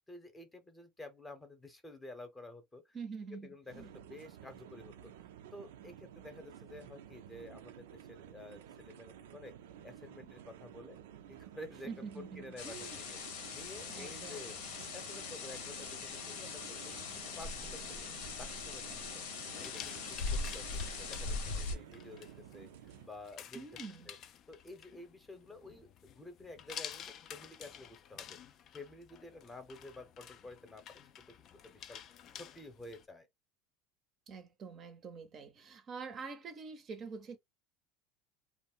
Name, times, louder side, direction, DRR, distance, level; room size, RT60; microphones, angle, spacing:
voice 1, 0.1-3.0 3.3-5.1 5.5-9.6 9.8-11.0 11.3-11.9 12.1-13.2 13.5-16.9 17.3-18.1 18.4-19.3 19.6-22.7 23.0-23.7 24.1-24.2 24.5-28.4 28.7-32.0 32.3-33.3, left 2 dB, 15° left, 0.7 m, -51 dB
voice 2, 2.9-3.9 11.9-13.0 13.9-14.5 17.8-18.2 23.5-24.1 34.3-37.4, right 5 dB, 35° right, 0.5 m, -46 dB
sound 1, 3.7-23.1, right 10 dB, 90° right, 0.4 m, -53 dB
sound 2, 12.6-21.8, left 4 dB, 75° left, 0.9 m, -41 dB
sound 3, 19.5-33.0, left 9 dB, 45° left, 0.3 m, -51 dB
2.3 x 2.0 x 3.6 m
supercardioid pair, 120°, 0 cm